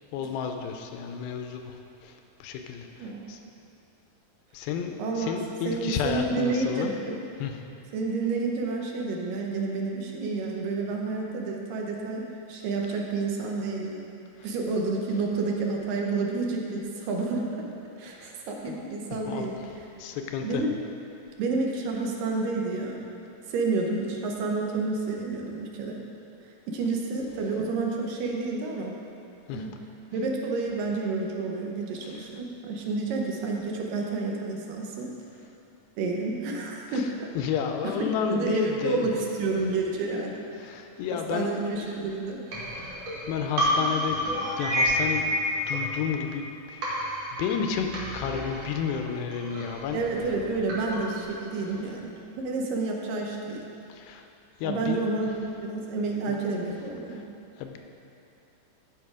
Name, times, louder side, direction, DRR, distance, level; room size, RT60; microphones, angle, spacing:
voice 1, 0.1-3.4 4.5-6.9 7.4-7.6 18.1-18.3 18.7-18.9 19.3-19.5 20.0-20.6 29.5-29.7 32.0-32.2 36.9-37.1 37.3-39.1 40.6-41.5 42.8-44.2 44.6-45.3 45.7-47.1 47.4-47.9 48.1-50.0 53.9-54.3 54.6-55.0 56.3-56.4 57.1-57.2 57.6-57.8, left 7 dB, 85° left, 5 dB, 2.4 m, -32 dB
voice 2, 5.0-5.3 5.7-7.2 7.9-14.0 14.4-17.7 18.0-19.6 20.4-20.8 21.4-23.1 23.5-26.0 26.7-29.0 29.5-29.8 30.1-35.1 36.0-37.3 37.8-38.0 38.2-40.5 41.3-42.4 49.9-53.6 54.6-57.2, right 3 dB, 75° right, 0 dB, 2.5 m, -29 dB
sound 1, 42.5-46.5 46.8-51.2, equal, 50° right, 2.7 m, -30 dB
14.0 x 5.1 x 4.9 m, 2.7 s
omnidirectional pair, 4.1 m